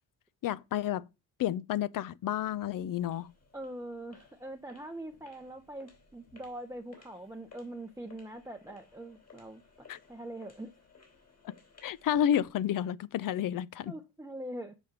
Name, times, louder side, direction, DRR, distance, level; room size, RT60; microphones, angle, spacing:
voice 1, 0.4-1.0 1.4-3.3 9.9-10.0 11.8-13.9, left 10 dB, 55° left, 0.5 m, -30 dB
sound 1, 2.4-12.6, left 5 dB, 40° left, 3.5 m, -59 dB
voice 2, 3.5-10.7 13.9-14.7, right 1 dB, 10° right, 0.7 m, -43 dB
7.3 x 5.1 x 5.8 m
cardioid pair, 100°, 39 cm